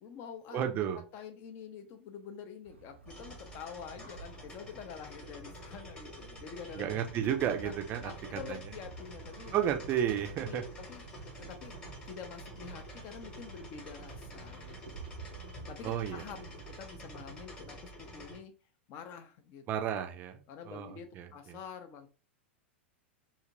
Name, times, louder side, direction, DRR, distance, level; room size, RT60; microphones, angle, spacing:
voice 1, 0.0-0.7 1.1-6.9 7.6-7.8 8.0-9.6 10.5-11.8 12.1-15.1 15.7-18.5 18.9-19.6 20.5-22.1, left 7 dB, 35° left, 7 dB, 0.5 m, -47 dB
voice 2, 0.5-1.0 6.7-8.1 8.5-8.6 9.5-10.6 15.8-16.2 19.7-21.6, right 9 dB, 30° right, 5 dB, 0.4 m, -32 dB
sound 1, 2.6-16.8, right 5 dB, 80° right, 0.5 m, -51 dB
sound 2, 3.1-18.4, equal, 15° left, 1.0 m, -48 dB
2.8 x 2.4 x 2.8 m, 0.35 s
figure-of-eight pair, 90°, 6 cm